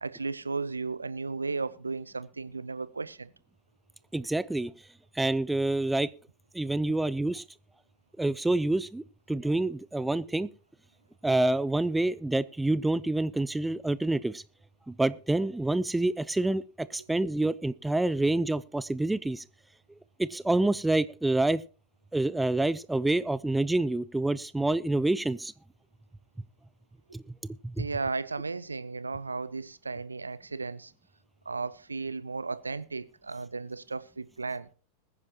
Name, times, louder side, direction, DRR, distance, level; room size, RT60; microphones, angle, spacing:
voice 1, 0.0-3.3 27.8-30.9 31.5-34.7, right 4 dB, 80° right, 0.6 m, -35 dB
voice 2, 4.1-4.7 5.2-6.1 6.5-7.4 8.2-10.5 11.2-14.4 14.9-19.4 20.2-21.6 22.1-25.5 27.1-27.2 27.6-27.9, right 2 dB, 5° right, 0.5 m, -27 dB
21.0 x 9.7 x 3.0 m
figure-of-eight pair, 90°, 0 cm